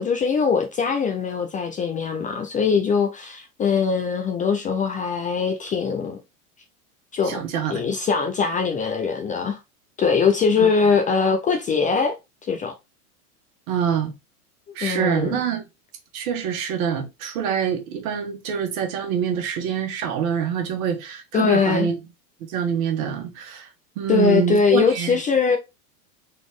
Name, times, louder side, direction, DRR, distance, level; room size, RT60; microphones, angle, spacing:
voice 1, 0.0-6.2 7.1-7.4 7.7-9.6 10.0-12.2 12.4-12.7 14.8-15.4 21.3-21.9 24.1-25.6, left 5 dB, 20° left, 0.4 m, -22 dB
voice 2, 7.3-7.8 10.6-10.7 13.7-14.1 14.7-15.6 16.1-21.9 22.5-23.7 24.0-25.2, right 8 dB, 65° right, 1.6 m, -25 dB
4.1 x 3.0 x 3.6 m
hypercardioid pair, 115°, 45 cm